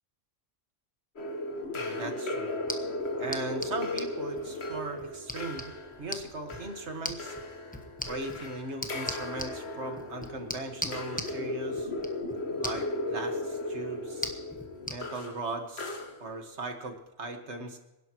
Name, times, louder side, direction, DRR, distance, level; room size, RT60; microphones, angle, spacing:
sound 1, 1.2-16.5, left 1 dB, 55° left, 1.6 m, -36 dB
voice 1, 1.7-2.6 3.2-5.7 6.0-7.4 8.1-11.9 12.6-14.3 14.9-17.8, right 2 dB, 60° right, 5 dB, 1.9 m, -38 dB
sound 2, 2.5-15.0, left 1 dB, 5° left, 1.0 m, -42 dB
26.5 x 11.5 x 3.0 m, 1.0 s
omnidirectional pair, 1.3 m